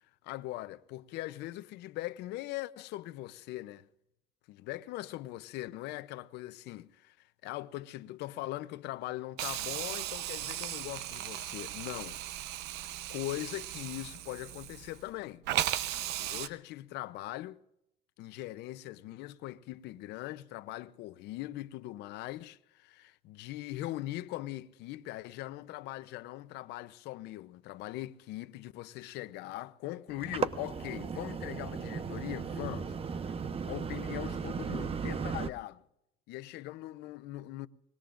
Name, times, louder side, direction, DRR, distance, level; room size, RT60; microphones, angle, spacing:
voice 1, 0.2-3.9 4.5-12.2 13.1-15.4 16.2-17.6 18.2-33.0 33.2-33.3 33.7-35.8 36.3-37.7, left 16 dB, 90° left, 0.7 m, -41 dB
Hiss, 9.4-15.1 15.5-16.5, right 13 dB, 85° right, 0.8 m, -37 dB
sound 1, 30.1-35.5, right 6 dB, 35° right, 1.0 m, -36 dB
25.0 x 21.5 x 2.5 m
cardioid pair, 110°, 17 cm